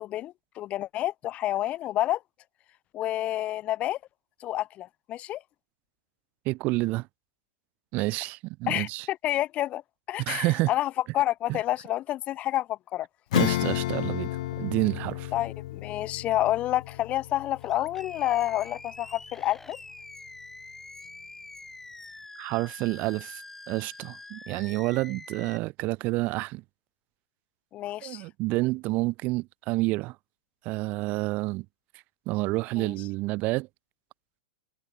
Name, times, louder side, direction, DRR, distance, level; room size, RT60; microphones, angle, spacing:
voice 1, 0.0-2.2 2.9-4.0 4.4-5.4 8.7-9.8 10.1-13.1 15.3-19.8 27.7-28.2 32.8-32.9, left 14 dB, 30° left, 0.6 m, -29 dB
voice 2, 6.4-7.1 7.9-9.1 10.2-10.7 11.5-11.6 13.3-14.3 14.6-15.3 22.4-23.4 23.7-26.6 28.0-30.1 30.6-31.6 32.2-33.7, right 22 dB, 40° right, 1.7 m, -29 dB
Acoustic guitar / Strum, 13.3-19.3, left 16 dB, 60° left, 1.4 m, -32 dB
Animal, 17.6-25.6, left 2 dB, 5° left, 3.8 m, -46 dB
hypercardioid pair, 125°, 4 cm